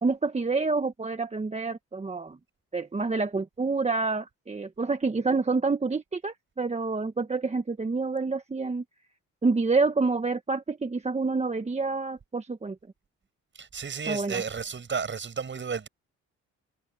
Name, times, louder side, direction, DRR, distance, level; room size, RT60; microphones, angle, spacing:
voice 1, 0.0-2.4 2.7-8.8 9.4-12.8 14.1-14.4, right 3 dB, 20° right, 1.2 m, -28 dB
voice 2, 13.6-15.9, right 6 dB, 40° right, 6.4 m, -32 dB
cardioid pair, 90°, 30 cm